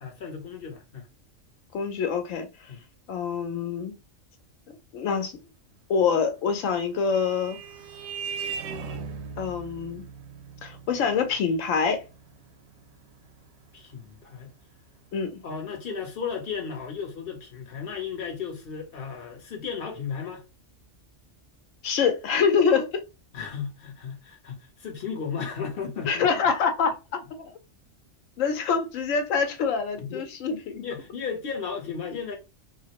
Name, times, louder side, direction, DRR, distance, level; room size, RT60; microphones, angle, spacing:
voice 1, 0.0-1.1 2.7-2.8 13.7-14.5 15.4-20.4 23.3-26.3 27.2-27.5 30.0-30.2 30.8-32.4, left 6 dB, 50° left, 0.9 m, -35 dB
voice 2, 1.7-2.7 3.1-3.9 4.9-5.4 5.9-7.6 9.4-10.1 10.6-12.0 15.1-15.4 21.8-22.9 26.1-26.9 28.4-30.9, left 6 dB, 80° left, 1.0 m, -25 dB
Vehicle horn car horn honking, 6.5-15.5, right 5 dB, 65° right, 0.8 m, -40 dB
3.2 x 2.1 x 2.8 m
omnidirectional pair, 1.3 m